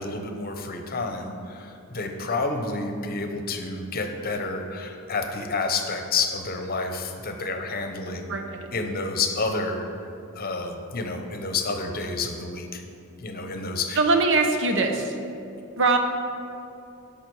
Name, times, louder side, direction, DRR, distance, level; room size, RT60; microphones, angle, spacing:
voice 1, 0.0-8.3 8.7-9.9 10.3-12.8 13.2-14.0, left 3 dB, 45° left, 5 dB, 0.8 m, -29 dB
voice 2, 14.0-15.0 15.8-16.0, right 3 dB, 60° right, 5 dB, 0.9 m, -21 dB
11.5 x 5.7 x 4.8 m, 2.6 s
head